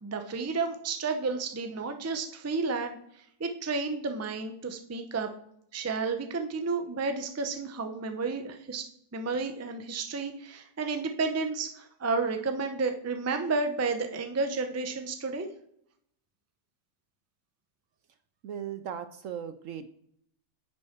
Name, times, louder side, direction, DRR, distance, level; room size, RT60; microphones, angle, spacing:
voice 1, 0.0-3.0 3.4-5.3 5.7-8.9 9.1-15.5, right 4 dB, 20° right, 6 dB, 0.5 m, -31 dB
voice 2, 18.4-19.9, right 8 dB, 65° right, 10 dB, 0.9 m, -37 dB
10.0 x 5.9 x 4.5 m, 0.72 s
omnidirectional pair, 1.7 m